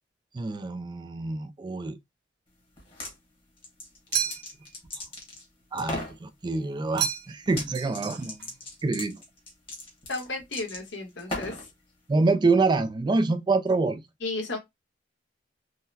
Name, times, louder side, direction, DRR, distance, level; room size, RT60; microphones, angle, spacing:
voice 1, 0.3-2.0 5.7-8.4 8.8-9.2 12.1-14.0, right 3 dB, 25° right, 0.3 m, -26 dB
sound 1, 2.8-3.1 3.6-5.4 5.8-6.2 7.5-7.7 7.9-11.7, left 2 dB, 30° left, 1.3 m, -37 dB
sound 2, 4.1-4.7 7.0-7.5 7.7-8.5, right 7 dB, 65° right, 0.7 m, -31 dB
voice 2, 10.1-11.6 14.2-14.6, left 2 dB, 70° left, 1.3 m, -33 dB
3.8 x 2.1 x 2.7 m
head